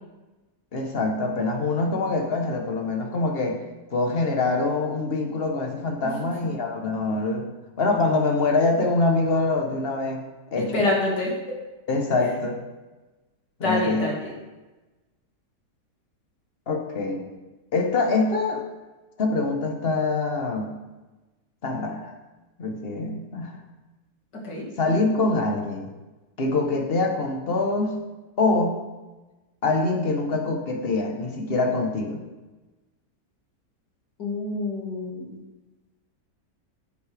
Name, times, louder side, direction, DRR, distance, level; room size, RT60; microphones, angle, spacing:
voice 1, 0.7-3.6 3.9-7.5 7.8-10.2 10.5-10.7 11.9-12.6 13.6-14.1 16.7-17.3 17.7-18.6 19.2-20.7 21.6-22.1 22.6-23.6 24.8-25.9 26.4-28.0 28.4-28.8 29.6-32.2, left 3 dB, 40° left, 2 dB, 1.1 m, -24 dB
voice 2, 10.7-11.3 13.6-14.2 24.4-24.6 34.2-35.4, left 2 dB, 80° left, -3 dB, 2.7 m, -26 dB
9.6 x 7.7 x 3.4 m, 1.1 s
omnidirectional pair, 1.8 m